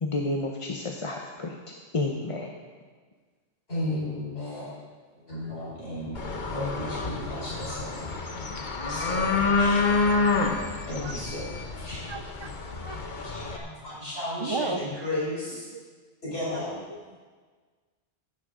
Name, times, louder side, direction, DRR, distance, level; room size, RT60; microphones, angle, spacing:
voice 1, 0.0-1.6 1.9-2.5, left 2 dB, 35° left, 1 dB, 0.8 m, -30 dB
voice 2, 3.7-4.7 5.3-8.5 8.8-9.8 10.9-11.5 11.8-12.0 13.2-15.7 16.2-16.8, left 1 dB, 90° left, -8 dB, 5.0 m, -34 dB
sound 1, 6.1-13.6, left 4 dB, 50° left, 1.2 m, -28 dB
voice 3, 12.1-12.5 12.8-13.0 14.4-14.8 15.7-15.8 16.5-16.6 16.9-17.2, right 4 dB, 30° right, 9 dB, 0.6 m, -34 dB
15.5 x 11.5 x 3.8 m, 1.5 s
omnidirectional pair, 1.0 m